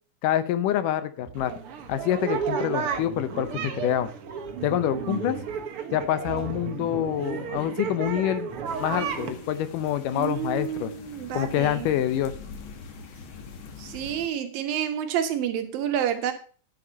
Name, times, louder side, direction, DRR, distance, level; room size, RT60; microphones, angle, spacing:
voice 1, 0.2-1.5 1.9-4.1 4.6-5.4 5.9-8.5 8.8-10.9 11.3-12.3, left 11 dB, 75° left, 13 dB, 2.3 m, -26 dB
sound 1, 1.2-1.7 4.2-4.7 6.2-6.8 9.2-10.0, right 11 dB, 25° right, 2.6 m, -44 dB
sound 2, 1.4-9.3, right 7 dB, 60° right, 1.5 m, -32 dB
sound 3, 8.6-14.3, left 5 dB, 50° left, 1.6 m, -43 dB
voice 2, 10.1-11.9 13.8-16.3, right 9 dB, 90° right, 8 dB, 3.1 m, -29 dB
11.0 x 7.4 x 5.3 m, 0.41 s
omnidirectional pair, 4.0 m